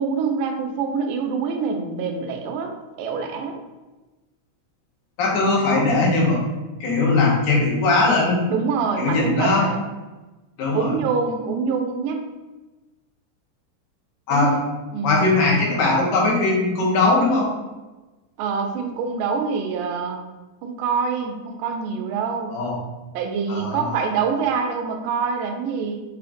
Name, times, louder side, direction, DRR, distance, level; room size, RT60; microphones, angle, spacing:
voice 1, 0.0-3.6 8.5-9.8 10.7-12.2 14.3-14.6 14.9-15.2 18.4-20.2 20.6-22.6 23.1-26.0, right 5 dB, 85° right, 4 dB, 2.2 m, -25 dB
voice 2, 5.2-6.4 6.8-8.4 9.0-9.6 10.6-10.9 14.3-14.5 15.0-17.5 22.5-22.8 23.5-24.0, left 3 dB, 75° left, -3 dB, 2.4 m, -19 dB
5.7 x 3.7 x 2.5 m, 1.1 s
omnidirectional pair, 3.7 m